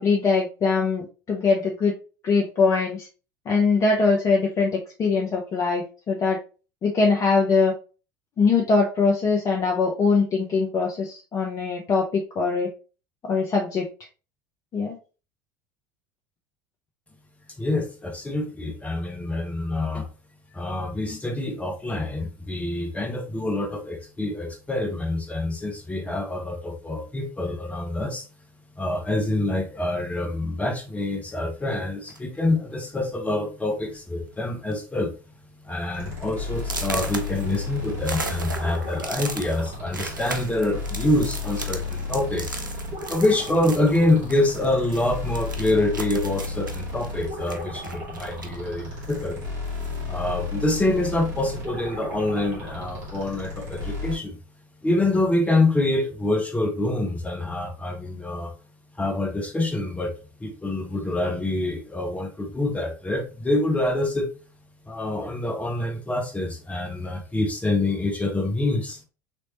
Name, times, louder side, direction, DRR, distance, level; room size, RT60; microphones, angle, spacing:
voice 1, 0.0-1.9 2.2-3.1 3.5-6.4 6.8-7.7 8.4-12.7 13.2-13.9 14.7-15.0, left 4 dB, 30° left, 0 dB, 0.8 m, -22 dB
voice 2, 17.6-20.1 20.5-28.3 28.8-35.1 35.6-42.6 43.1-49.4 50.1-54.4 54.8-58.5 59.0-60.1 60.4-64.3 64.9-69.0, left 2 dB, 15° left, 3 dB, 1.0 m, -26 dB
sound 1, 32.1-32.4 33.2-33.3 33.7-34.0 34.3-34.7 35.1-35.2 35.7-35.8 36.6-44.7 44.9-48.6 49.0-50.0, right 3 dB, 85° right, 0.5 m, -36 dB
sound 2, 35.9-54.2, left 3 dB, 55° right, 2.0 m, -33 dB
4.3 x 3.1 x 2.9 m, 0.34 s
figure-of-eight pair, 70°, 10 cm